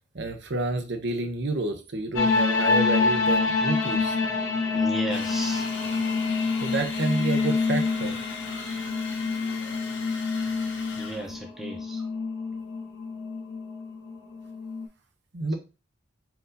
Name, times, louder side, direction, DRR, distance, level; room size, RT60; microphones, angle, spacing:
voice 1, 0.1-4.2 6.6-8.1 15.3-15.5, right 2 dB, 60° right, 0.8 m, -29 dB
sound 1, 2.1-14.9, left 4 dB, 90° left, 0.9 m, -27 dB
voice 2, 4.7-5.6 11.0-12.0, right 2 dB, ahead, 0.8 m, -35 dB
sound 2, 5.1-11.4, left 3 dB, 60° left, 1.0 m, -39 dB
4.5 x 2.7 x 3.9 m
head